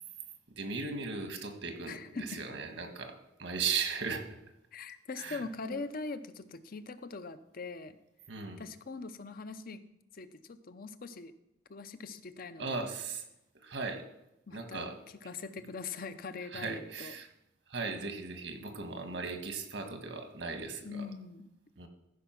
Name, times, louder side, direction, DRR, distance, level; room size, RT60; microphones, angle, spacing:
voice 1, 0.6-2.0 2.3-4.2 5.2-5.4 5.7-5.8 8.3-8.6 12.6-13.2 13.6-14.0 14.5-15.0 16.5-17.3 17.7-21.1 21.8-21.9, right 4 dB, 85° right, 6 dB, 1.6 m, -37 dB
voice 2, 1.9-2.4 4.7-8.0 8.6-9.8 10.1-11.3 11.7-12.8 14.5-15.0 15.2-17.1 20.8-21.5, left 4 dB, 55° left, 11 dB, 0.7 m, -42 dB
14.0 x 5.5 x 5.9 m, 0.87 s
head